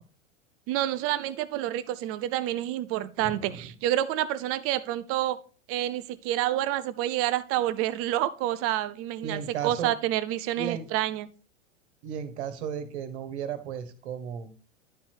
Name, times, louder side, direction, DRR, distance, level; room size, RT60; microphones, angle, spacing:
voice 1, 0.7-5.4 5.7-11.3, right 13 dB, 35° right, 0.7 m, -28 dB
voice 2, 3.2-3.6 9.2-9.9 10.6-10.9 12.0-14.5, right 8 dB, 60° right, 1.6 m, -35 dB
11.0 x 4.4 x 4.6 m
hypercardioid pair, 95°, 38 cm